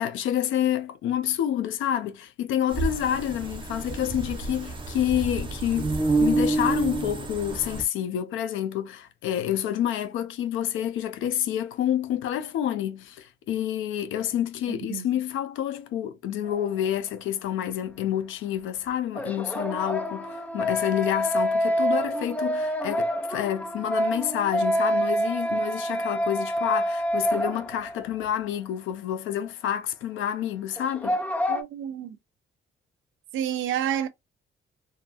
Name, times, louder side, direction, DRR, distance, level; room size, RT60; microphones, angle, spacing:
voice 1, 0.0-31.2, left 10 dB, 85° left, 0.5 m, -28 dB
Bees recorded close, 2.7-7.8, right 2 dB, 25° right, 0.9 m, -28 dB
voice 2, 14.7-15.1 31.5-32.2 33.3-34.1, right 10 dB, 80° right, 0.5 m, -29 dB
sound 1, 16.5-16.6 19.2-28.1 28.3-28.4 30.8-31.6, equal, 5° left, 0.4 m, -27 dB
2.7 x 2.3 x 2.5 m
cardioid pair, 90°, 20 cm